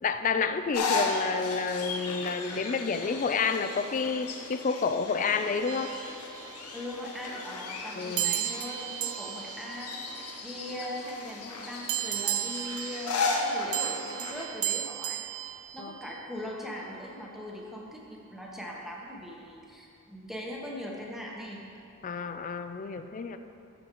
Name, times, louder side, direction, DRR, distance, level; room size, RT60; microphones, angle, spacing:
voice 1, 0.0-6.0 8.0-8.4 15.8-15.9 22.0-23.4, left 5 dB, 35° left, 9 dB, 0.4 m, -29 dB
sound 1, 0.7-14.5, left 3 dB, 90° left, 1.0 m, -35 dB
sound 2, 5.7-6.9 8.2-10.9 11.9-16.4, right 14 dB, 65° right, 0.3 m, -35 dB
voice 2, 6.7-15.5 15.7-21.6, left 1 dB, ahead, -3 dB, 1.0 m, -40 dB
14.0 x 6.5 x 3.0 m, 2.6 s
head